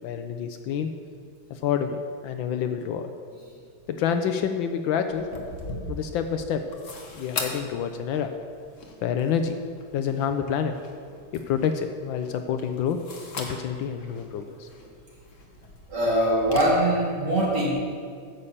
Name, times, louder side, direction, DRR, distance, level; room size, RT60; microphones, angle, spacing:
voice 1, 0.0-0.9 1.5-3.1 3.9-5.3 5.9-6.6 7.1-8.3 9.0-9.6 9.9-10.7 11.3-13.0 13.4-14.7, left 7 dB, 75° left, 7 dB, 1.3 m, -28 dB
sound 1, 5.2-16.6, left 3 dB, 45° left, 1.2 m, -41 dB
voice 2, 15.9-17.7, right 1 dB, 50° right, -6 dB, 3.4 m, -22 dB
9.7 x 6.6 x 7.2 m, 2.2 s
omnidirectional pair, 2.3 m